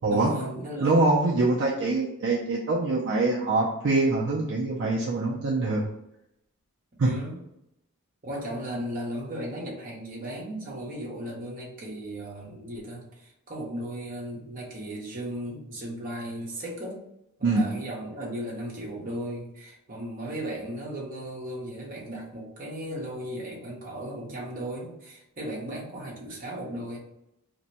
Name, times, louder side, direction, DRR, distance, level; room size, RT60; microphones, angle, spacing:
voice 1, 0.1-0.9 7.0-7.4 8.2-17.0 17.4-27.0, right 1 dB, 40° right, -3 dB, 0.8 m, -36 dB
voice 2, 0.8-5.8 7.0-7.1 17.4-17.6, right 2 dB, 55° right, -4 dB, 0.4 m, -24 dB
2.6 x 2.1 x 4.0 m, 0.82 s
head